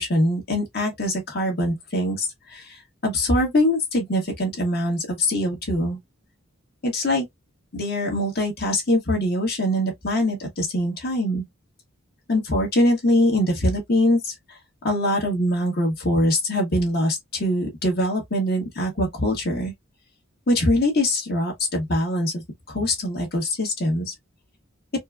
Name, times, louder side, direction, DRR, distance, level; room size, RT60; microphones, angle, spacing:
voice 1, 0.0-6.0 6.8-7.2 7.7-11.4 12.3-14.6 14.8-19.7 20.5-22.4 22.7-24.1, left 1 dB, 50° left, 1.5 m, -23 dB
4.3 x 2.2 x 2.2 m
head